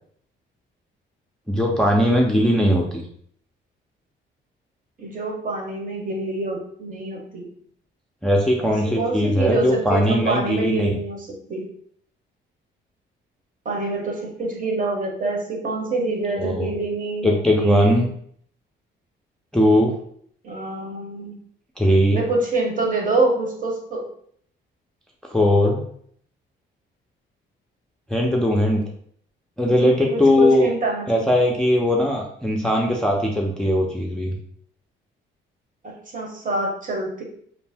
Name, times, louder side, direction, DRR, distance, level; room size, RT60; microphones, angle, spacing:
voice 1, 1.5-3.0 8.2-11.0 16.3-16.8 17.2-18.1 19.5-19.9 21.8-22.2 25.3-25.9 28.1-28.8 29.6-30.7 31.1-34.4, equal, 5° left, -1 dB, 0.4 m, -19 dB
voice 2, 5.0-7.5 8.6-11.7 13.6-18.0 20.4-21.4 22.1-24.1 29.7-29.8 30.1-31.3 35.8-37.2, right 2 dB, 40° right, 0 dB, 0.9 m, -26 dB
2.6 x 2.0 x 3.4 m, 0.63 s
cardioid pair, 90°, 20 cm